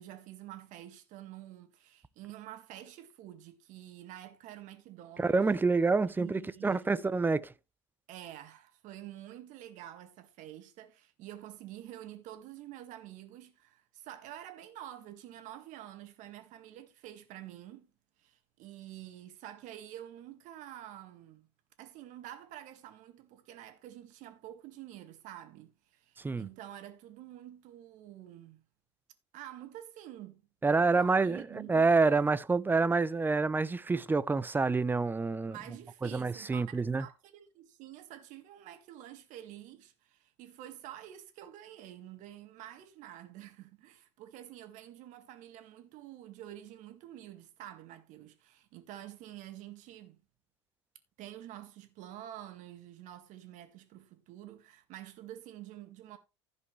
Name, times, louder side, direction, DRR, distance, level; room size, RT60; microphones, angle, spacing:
voice 1, 0.0-5.4 6.1-6.9 8.1-17.9 18.2-21.5 21.8-28.6 29.3-30.4 30.9-32.3 34.9-35.0 35.5-50.2 51.2-56.2, right 12 dB, 55° right, 2.0 m, -48 dB
voice 2, 5.2-7.5 26.2-26.5 30.6-31.4 31.7-35.6 36.0-37.1, right 4 dB, 15° right, 0.6 m, -27 dB
15.5 x 5.4 x 3.2 m
hypercardioid pair, 80°, 15 cm